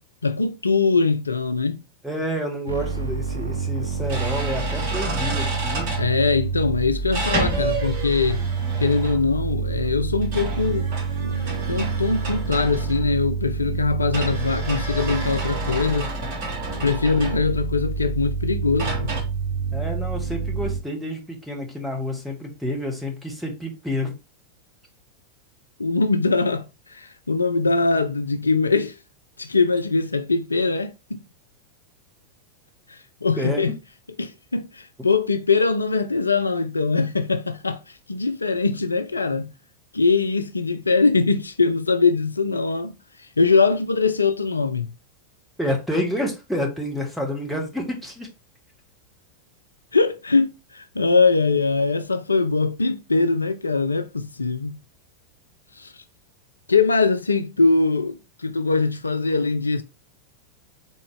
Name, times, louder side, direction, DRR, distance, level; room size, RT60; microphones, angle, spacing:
voice 1, 0.2-1.8 6.0-8.4 8.8-10.9 11.2-16.1 16.8-19.2 25.8-29.0 29.4-31.2 32.9-33.8 34.2-39.5 39.9-44.9 49.9-54.8 55.8-56.0 56.7-59.8, left 4 dB, 80° left, 0.3 m, -22 dB
voice 2, 2.0-5.9 19.7-24.1 33.4-33.8 45.6-48.3, equal, ahead, 1.2 m, -29 dB
sound 1, 2.7-20.8, right 5 dB, 75° right, 0.6 m, -28 dB
sound 2, 4.1-6.1 7.1-9.4 10.2-13.2 14.1-17.7 18.8-19.2, right 2 dB, 45° right, 1.3 m, -31 dB
3.9 x 2.9 x 3.4 m
figure-of-eight pair, 90°, 0 cm